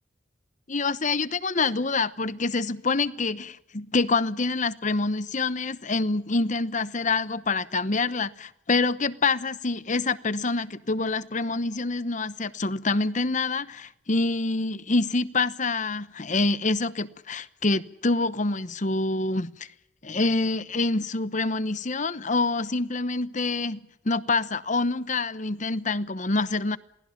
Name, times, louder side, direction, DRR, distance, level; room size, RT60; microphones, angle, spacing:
voice 1, 0.7-19.7 20.0-26.8, left 3 dB, 40° left, 1.0 m, -26 dB
28.0 x 19.0 x 7.4 m
head